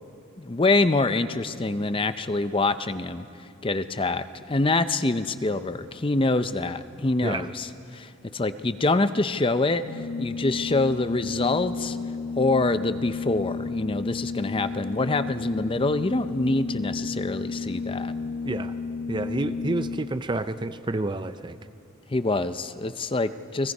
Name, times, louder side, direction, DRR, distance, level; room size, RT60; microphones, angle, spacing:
voice 1, 0.4-9.8 10.2-12.0 12.4-18.1 22.1-23.7, left 2 dB, 25° left, 11 dB, 0.6 m, -25 dB
Organ, 9.7-20.4, left 4 dB, 75° left, 0.7 m, -32 dB
voice 2, 19.1-21.6, right 2 dB, 20° right, 11 dB, 0.5 m, -29 dB
29.5 x 20.5 x 5.4 m, 2.5 s
head